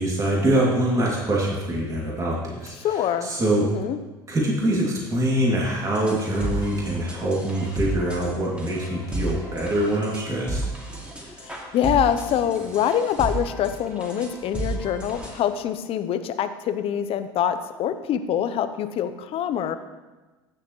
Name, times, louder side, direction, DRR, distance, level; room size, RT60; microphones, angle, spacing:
voice 1, 0.0-3.7 4.3-10.6, right 1 dB, 25° right, -4 dB, 2.6 m, -24 dB
voice 2, 2.8-3.3 3.6-4.0 11.2-19.8, left 9 dB, 50° left, 11 dB, 0.8 m, -25 dB
sound 1, 5.9-15.4, right 2 dB, 10° right, 2.7 m, -33 dB
14.0 x 6.8 x 3.1 m, 1.2 s
hypercardioid pair, 75°, 12 cm